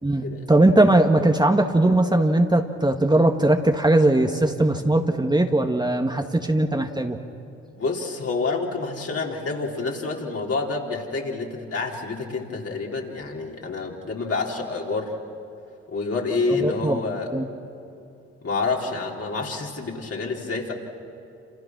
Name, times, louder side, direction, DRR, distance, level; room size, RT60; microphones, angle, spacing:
voice 1, 0.0-7.2 16.5-17.0 17.3-17.4, right 1 dB, 15° right, 3 dB, 1.7 m, -20 dB
voice 2, 7.8-15.1 15.9-17.3 18.4-20.7, left 3 dB, 50° left, -1 dB, 4.3 m, -28 dB
28.0 x 27.5 x 6.2 m, 2.7 s
supercardioid pair, 55°, 31 cm